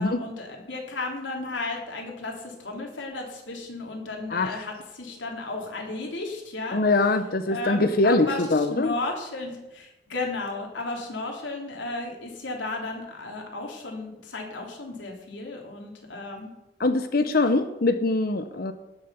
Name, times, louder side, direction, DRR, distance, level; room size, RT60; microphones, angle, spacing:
voice 1, 0.0-6.8 7.5-16.5, left 2 dB, 90° left, 1 dB, 3.4 m, -34 dB
voice 2, 4.3-4.6 6.7-8.9 16.8-18.7, left 2 dB, 55° left, 10 dB, 0.7 m, -23 dB
17.5 x 6.7 x 7.1 m, 1.0 s
head